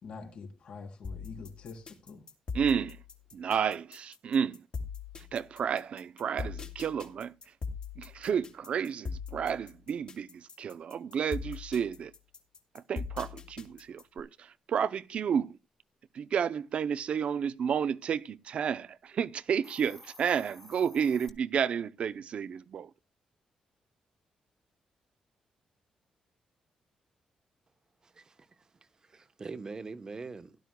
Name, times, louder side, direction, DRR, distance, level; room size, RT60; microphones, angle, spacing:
voice 1, 0.0-2.2, left 4 dB, 60° left, 3.6 m, -45 dB
sound 1, 1.0-14.2, left 5 dB, 45° left, 2.7 m, -41 dB
voice 2, 2.5-3.0 3.3-4.7 5.2-7.3 8.0-12.1 12.7-15.6 16.1-22.9, right 7 dB, 60° right, 0.6 m, -31 dB
Hiss, 19.5-21.3, left 2 dB, 15° left, 1.5 m, -52 dB
voice 3, 28.0-28.7 29.0-30.6, right 4 dB, 30° right, 1.0 m, -43 dB
16.5 x 12.0 x 2.3 m
cardioid pair, 100°, 2 cm